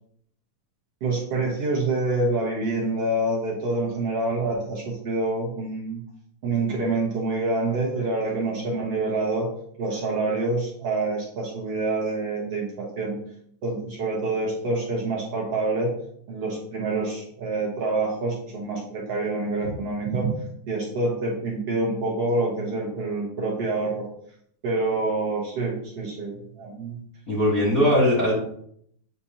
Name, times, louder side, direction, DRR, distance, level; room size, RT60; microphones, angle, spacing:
voice 1, 1.0-6.0 6.4-9.5 9.8-13.2 13.6-16.0 16.3-20.3 20.7-24.1 24.6-27.0, right 2 dB, 60° right, -3 dB, 1.8 m, -26 dB
voice 2, 27.3-28.3, equal, 55° left, -8 dB, 0.9 m, -20 dB
8.3 x 4.4 x 2.8 m, 0.67 s
omnidirectional pair, 4.2 m